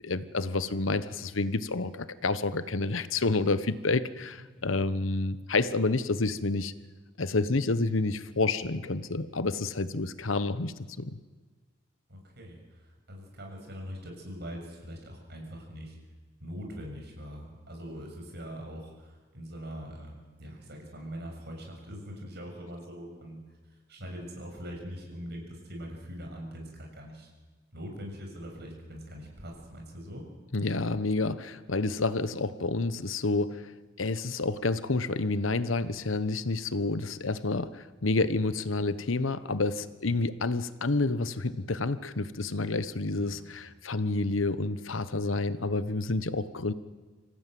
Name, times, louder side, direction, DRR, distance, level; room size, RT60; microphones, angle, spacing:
voice 1, 0.0-6.7 7.2-11.2 30.5-33.7 34.0-46.7, left 3 dB, 80° left, 14 dB, 1.1 m, -29 dB
voice 2, 12.1-15.9 16.4-23.4 23.7-27.3 27.7-30.3 40.0-40.1 43.1-43.4, equal, 55° right, 2 dB, 7.0 m, -42 dB
26.5 x 16.0 x 9.3 m, 1.4 s
head